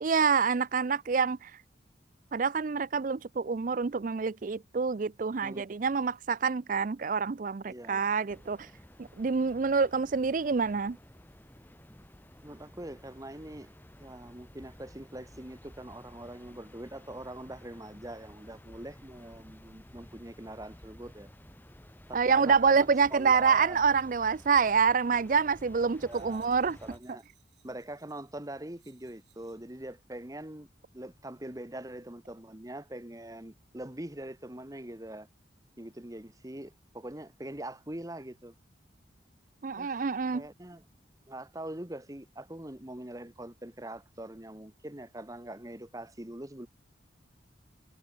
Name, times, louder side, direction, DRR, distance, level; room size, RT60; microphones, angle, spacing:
voice 1, 0.0-1.5 2.3-8.7 9.0-11.0 22.1-26.8 39.6-40.4, right 5 dB, 45° right, 0.4 m, -27 dB
voice 2, 7.7-8.0 12.4-13.7 14.0-21.3 22.1-23.8 26.0-26.5 26.8-27.2 27.6-30.7 30.9-35.3 35.8-38.5 39.8-39.9 40.3-40.8 41.3-46.7, right 1 dB, 20° right, 1.4 m, -43 dB
sound 1, 8.3-27.0, equal, 10° left, 1.7 m, -53 dB
sound 2, 26.0-29.8 30.4-30.6, right 14 dB, 65° right, 4.4 m, -68 dB
head